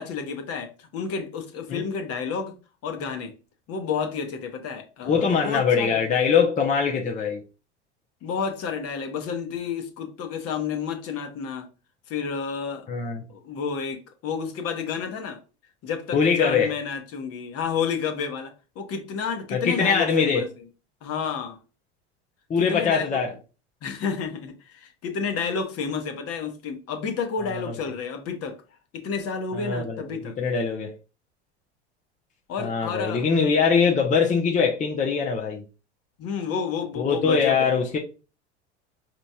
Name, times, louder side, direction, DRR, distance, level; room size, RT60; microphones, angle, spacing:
voice 1, 0.0-2.6 2.8-3.3 3.7-6.0 8.2-11.7 12.1-12.9 13.3-15.4 15.8-20.5 21.0-21.6 22.6-23.2 23.8-28.6 28.9-30.4 32.5-33.3 36.2-37.7, left 6 dB, 45° left, 1.1 m, -30 dB
voice 2, 5.0-7.4 12.9-13.2 16.1-16.7 19.5-20.4 22.5-23.3 27.5-27.7 29.5-30.1 30.4-30.9 32.6-35.6 37.0-38.0, left 6 dB, 20° left, 0.8 m, -22 dB
5.0 x 3.0 x 2.3 m
hypercardioid pair, 80°, 35 cm